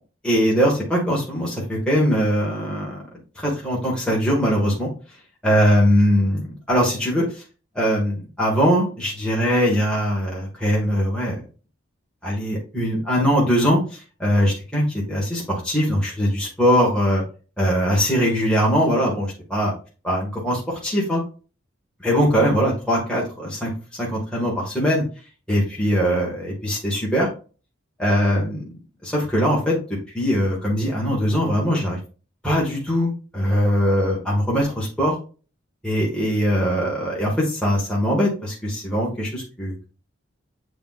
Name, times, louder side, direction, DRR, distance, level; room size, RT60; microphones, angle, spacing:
voice 1, 0.2-3.0 3.4-4.9 5.4-6.4 6.7-7.4 7.8-11.3 12.2-17.2 17.6-19.7 20.0-21.2 22.0-23.7 24.0-25.0 25.5-27.3 28.0-28.6 29.0-29.8 30.1-32.0 32.4-35.1 35.8-39.9, equal, 5° left, -5 dB, 2.0 m, -21 dB
8.0 x 5.1 x 2.6 m, 0.35 s
head